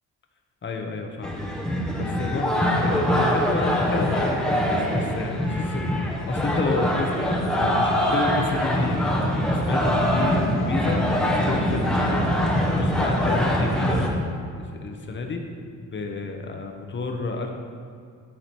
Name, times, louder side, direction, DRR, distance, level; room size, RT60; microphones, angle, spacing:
voice 1, 0.6-1.4 1.9-11.0 11.4-15.4 15.8-17.5, left 3 dB, 35° left, 3 dB, 1.0 m, -30 dB
sound 1, 1.2-14.1, equal, ahead, 1.1 m, -23 dB
13.0 x 4.9 x 4.5 m, 2.2 s
cardioid pair, 115°, 34 cm